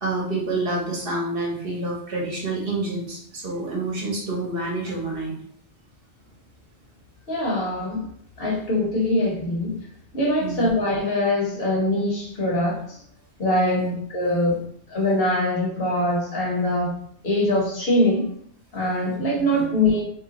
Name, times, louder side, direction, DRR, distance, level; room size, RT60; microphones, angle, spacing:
voice 1, 0.0-5.3 10.4-10.7 13.8-13.9 14.2-14.3 19.5-19.6, right 2 dB, 50° right, -3 dB, 1.1 m, -28 dB
voice 2, 7.3-8.1 8.4-9.7 10.1-13.0 13.4-14.6 14.9-16.9 17.2-18.3 18.7-20.0, left 1 dB, 55° left, -3 dB, 1.2 m, -23 dB
3.0 x 2.2 x 3.8 m, 0.64 s
omnidirectional pair, 1.3 m